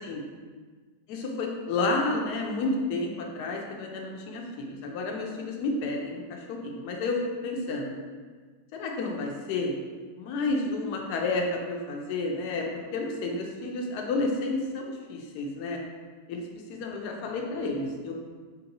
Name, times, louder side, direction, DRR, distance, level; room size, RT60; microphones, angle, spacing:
voice 1, 1.1-7.2 7.4-8.0 8.7-9.7 10.2-12.7 12.9-15.8 16.3-16.4 16.7-18.1, left 3 dB, 75° left, 1 dB, 1.1 m, -31 dB
4.4 x 2.7 x 2.8 m, 1.5 s
omnidirectional pair, 1.9 m